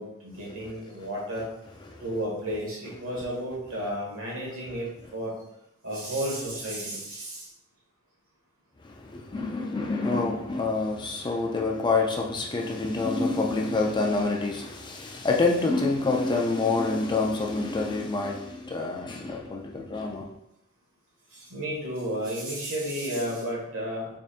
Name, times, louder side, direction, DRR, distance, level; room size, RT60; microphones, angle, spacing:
voice 1, 0.0-1.5 2.0-5.3 5.8-7.5 21.3-24.1, equal, 65° right, -4 dB, 1.5 m, -32 dB
voice 2, 8.8-20.3, left 3 dB, 20° left, 0 dB, 0.4 m, -27 dB
4.0 x 3.5 x 2.5 m, 0.81 s
head